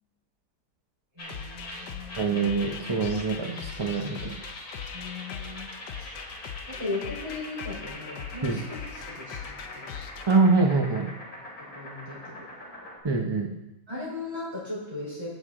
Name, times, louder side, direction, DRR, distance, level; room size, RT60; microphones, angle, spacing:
voice 1, 1.1-2.2 4.9-5.7 6.0-6.1 6.7-9.9 11.6-12.4 13.9-15.3, left 2 dB, 15° right, -5 dB, 3.9 m, -37 dB
sound 1, 1.2-13.0, left 1 dB, 60° left, 3.3 m, -43 dB
sound 2, 1.3-10.4, left 8 dB, 80° left, 1.3 m, -41 dB
voice 2, 2.2-4.4 8.4-8.6 10.3-11.1 13.0-13.5, right 4 dB, 45° right, 2 dB, 0.3 m, -24 dB
14.5 x 6.5 x 3.7 m, 0.89 s
omnidirectional pair, 1.8 m